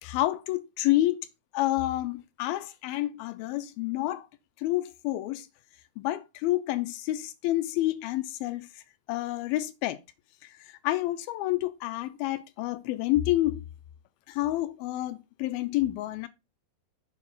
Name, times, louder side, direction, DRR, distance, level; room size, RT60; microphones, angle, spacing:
voice 1, 0.0-1.3 1.5-4.3 4.6-5.5 6.0-8.7 9.1-10.0 10.4-13.6 14.3-16.3, left 15 dB, 90° left, 2.5 m, -29 dB
7.2 x 4.6 x 5.5 m
omnidirectional pair, 4.2 m